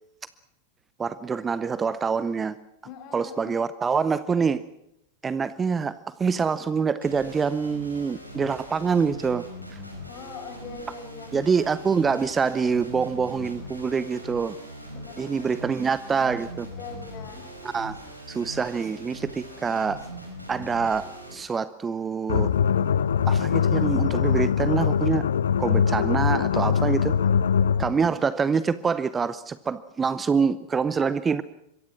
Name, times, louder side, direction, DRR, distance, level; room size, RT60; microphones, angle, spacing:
voice 1, 1.0-2.6 3.1-4.6 5.2-9.5 9.7-9.8 11.3-14.6 15.2-16.7 17.6-18.0 18.3-20.1 20.5-22.5 23.3-25.3 25.6-27.1 27.8-31.4, right 5 dB, 15° right, 16 dB, 0.8 m, -25 dB
voice 2, 2.8-3.6 10.1-11.3 14.9-15.9 16.8-17.4 27.7-28.2, left 5 dB, 40° left, 7 dB, 5.5 m, -42 dB
sound 1, 7.0-21.3, equal, 90° right, 5.7 m, -41 dB
sound 2, 22.3-28.0, left 7 dB, 65° left, 0.8 m, -22 dB
25.5 x 23.0 x 6.2 m, 0.79 s
figure-of-eight pair, 90°, 0 cm